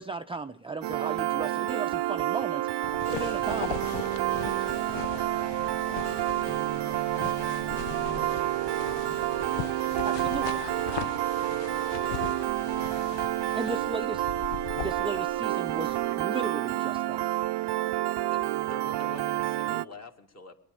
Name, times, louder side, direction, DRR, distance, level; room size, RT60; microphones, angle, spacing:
voice 1, 0.0-2.7 3.1-3.8 4.6-4.7 10.0-10.5 13.5-14.2 14.8-17.3, right 3 dB, 10° right, 8 dB, 0.5 m, -35 dB
Piano, 0.8-19.9, right 15 dB, 60° right, 0.5 m, -29 dB
voice 2, 2.8-3.2 4.9-13.4 13.9-14.3 17.5-18.3 18.9-19.4, left 2 dB, 85° left, -1 dB, 2.9 m, -58 dB
sound 1, 2.8-16.2, left 14 dB, 65° left, 0.5 m, -40 dB
voice 3, 18.3-20.6, left 3 dB, 35° left, 4 dB, 2.1 m, -46 dB
20.5 x 10.5 x 5.2 m, 0.76 s
cardioid pair, 75°, 46 cm